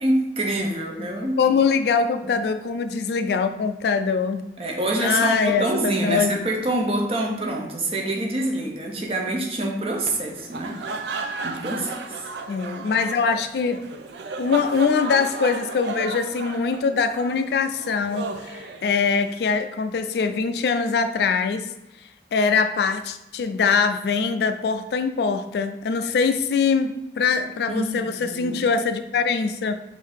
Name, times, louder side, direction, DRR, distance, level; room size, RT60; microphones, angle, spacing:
voice 1, 0.0-1.4 2.2-2.3 4.6-10.8 11.4-12.2 27.7-28.6, right 1 dB, 35° right, 1 dB, 0.7 m, -26 dB
voice 2, 1.4-4.4 5.0-6.5 12.5-13.8 14.4-21.6 22.3-29.7, left 5 dB, 70° left, 9 dB, 0.3 m, -23 dB
sound 1, 10.4-19.4, right 4 dB, 80° right, 0.4 m, -34 dB
5.4 x 2.7 x 3.5 m, 0.89 s
head